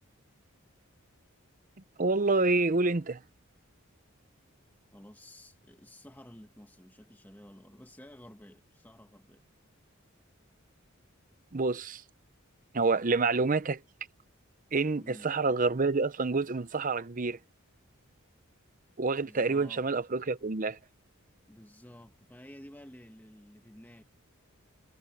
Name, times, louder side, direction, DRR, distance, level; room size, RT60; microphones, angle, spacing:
voice 1, 2.0-3.2 11.5-12.0 12.7-13.8 14.7-17.4 19.0-20.8, right 3 dB, 40° right, 0.7 m, -27 dB
voice 2, 4.9-9.4 15.0-15.3 19.2-19.8 21.5-24.0, left 1 dB, 10° left, 1.5 m, -52 dB
head